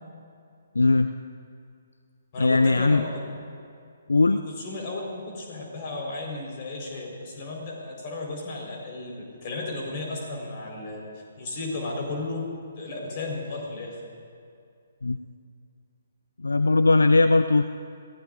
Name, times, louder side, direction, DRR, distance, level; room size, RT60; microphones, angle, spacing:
voice 1, 0.7-1.1 2.4-3.0 4.1-4.4 15.0-15.2 16.4-17.6, left 3 dB, 75° left, 10 dB, 0.4 m, -19 dB
voice 2, 2.3-3.4 4.3-11.0 11.4-12.4 12.8-14.0, left 2 dB, 40° left, -1 dB, 4.5 m, -34 dB
25.0 x 16.0 x 2.6 m, 2.4 s
figure-of-eight pair, 130°, 0 cm